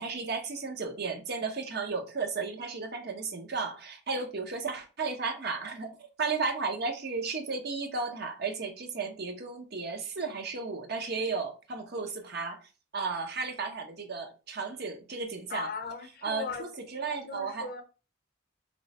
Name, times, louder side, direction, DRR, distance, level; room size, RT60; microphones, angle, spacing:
voice 1, 0.0-12.6 12.9-15.7 16.2-17.7, right 4 dB, 55° right, 0.8 m, -34 dB
voice 2, 15.5-16.7 17.1-17.8, left 4 dB, 50° left, 0.6 m, -38 dB
3.1 x 3.1 x 4.0 m
head